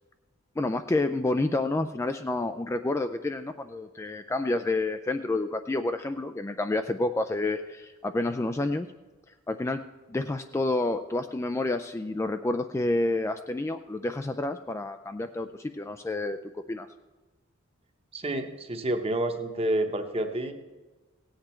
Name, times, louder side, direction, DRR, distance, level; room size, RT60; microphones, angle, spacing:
voice 1, 0.6-8.9 9.5-9.8 10.1-16.9, left 2 dB, 15° left, 8 dB, 0.3 m, -29 dB
voice 2, 18.1-20.5, right 1 dB, 30° right, 6 dB, 1.0 m, -29 dB
17.0 x 8.1 x 4.4 m, 1.2 s
head